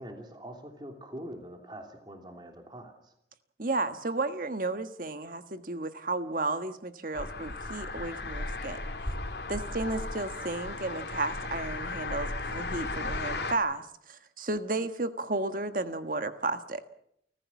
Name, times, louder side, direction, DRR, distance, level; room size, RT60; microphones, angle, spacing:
voice 1, 0.0-3.1, right 1 dB, 25° right, 3 dB, 3.0 m, -44 dB
voice 2, 3.6-8.9 9.5-16.8, right 2 dB, 50° right, 9 dB, 1.5 m, -33 dB
sound 1, 7.1-13.5, left 2 dB, 65° left, 2.5 m, -35 dB
30.0 x 15.0 x 7.3 m, 0.75 s
head